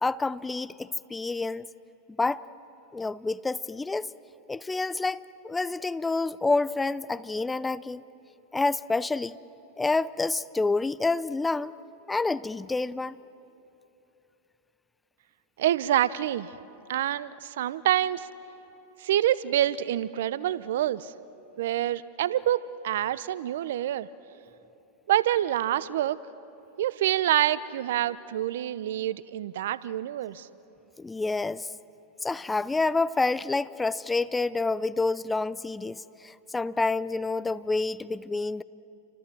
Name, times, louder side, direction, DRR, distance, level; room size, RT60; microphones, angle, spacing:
voice 1, 0.0-1.7 2.2-2.5 2.9-4.1 4.5-8.0 8.5-9.4 9.8-11.7 12.1-13.2 31.0-31.7 32.2-38.6, left 3 dB, 10° left, 17 dB, 0.6 m, -28 dB
voice 2, 15.6-16.5 16.9-18.3 19.0-21.1 21.6-24.1 25.1-26.2 26.8-30.5, right 12 dB, 70° right, 18 dB, 0.8 m, -26 dB
30.0 x 26.0 x 7.7 m, 3.0 s
hypercardioid pair, 100°, 0 cm